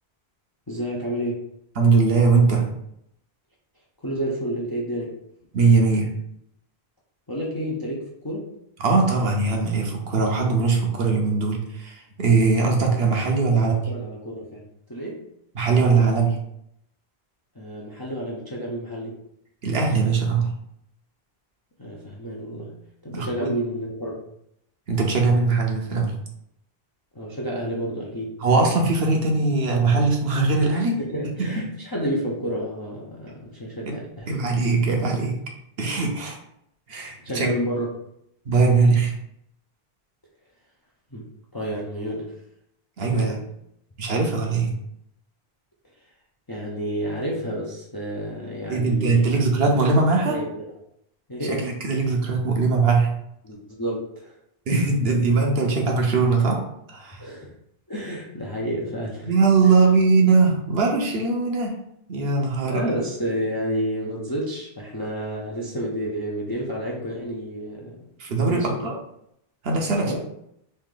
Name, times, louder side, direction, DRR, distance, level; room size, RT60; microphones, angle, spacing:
voice 1, 0.7-1.5 4.0-5.2 7.3-8.5 13.4-14.6 14.9-15.2 17.6-19.1 21.8-22.8 23.0-24.2 27.1-28.4 30.7-34.3 37.2-37.9 41.1-41.3 41.5-42.3 43.0-43.5 46.5-49.4 50.3-50.7 51.3-51.6 51.9-52.1 53.4-54.3 57.2-57.5 57.9-59.3 62.6-68.1 68.4-68.9 70.0-70.2, equal, 25° left, -3 dB, 0.5 m, -30 dB
voice 2, 1.8-2.7 5.5-6.1 8.8-13.8 15.5-16.4 19.6-20.5 23.1-23.5 24.9-26.1 28.4-31.0 31.4-31.5 33.8-34.0 34.3-35.3 35.8-36.4 36.9-37.5 38.5-39.1 43.0-43.3 44.0-44.7 48.7-50.4 51.5-53.1 54.7-56.6 56.9-57.3 59.2-61.8 62.1-62.8 68.2-68.9 69.6-70.2, right 4 dB, 70° right, 1 dB, 1.0 m, -20 dB
3.3 x 2.7 x 3.8 m, 0.75 s
omnidirectional pair, 1.1 m